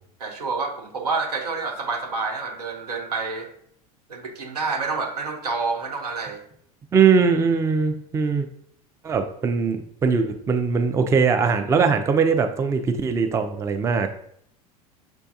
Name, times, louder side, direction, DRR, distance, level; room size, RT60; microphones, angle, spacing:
voice 1, 0.2-3.5 4.1-6.4, right 4 dB, 85° right, 3 dB, 0.7 m, -28 dB
voice 2, 6.9-8.5 9.0-14.1, right 5 dB, 15° right, 7 dB, 0.4 m, -21 dB
6.1 x 2.2 x 2.7 m, 0.68 s
hypercardioid pair, 85°, 20 cm